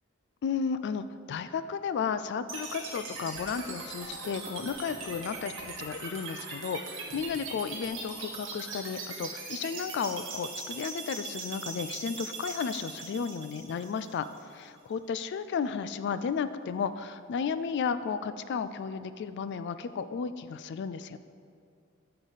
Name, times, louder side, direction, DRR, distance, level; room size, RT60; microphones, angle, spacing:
voice 1, 0.4-14.3 14.5-21.2, left 6 dB, 55° left, 13 dB, 0.3 m, -33 dB
sound 1, 2.5-14.5, right 4 dB, 65° right, 1.9 m, -40 dB
9.8 x 6.7 x 4.0 m, 2.3 s
head